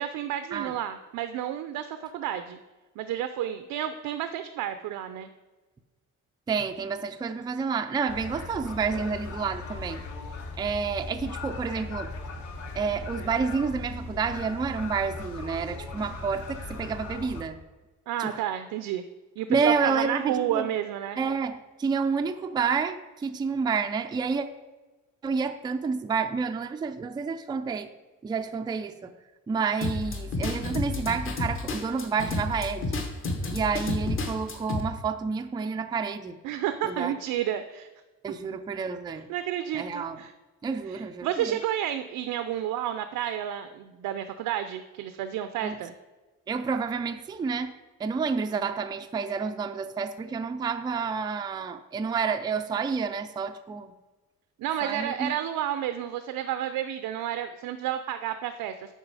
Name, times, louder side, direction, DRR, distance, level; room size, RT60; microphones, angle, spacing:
voice 1, 0.0-2.6 3.0-5.3 18.1-19.0 19.4-21.2 36.4-37.9 39.3-40.3 40.9-45.9 54.6-58.9, right 11 dB, 90° right, 10 dB, 0.6 m, -31 dB
voice 2, 6.5-10.0 10.6-12.1 12.8-17.6 18.2-18.4 19.5-20.7 21.2-24.5 25.2-27.9 28.2-29.1 29.5-33.0 33.5-36.4 36.8-37.1 38.2-39.3 39.7-40.2 40.6-41.6 45.6-45.8 46.5-53.9 54.8-55.3, right 5 dB, 15° right, 8 dB, 0.3 m, -29 dB
sound 1, 8.1-17.4, left 3 dB, 60° left, 1.4 m, -38 dB
sound 2, 29.8-34.8, left 2 dB, 40° left, 1.2 m, -31 dB
9.1 x 5.7 x 4.8 m, 1.2 s
cardioid pair, 150°, 32 cm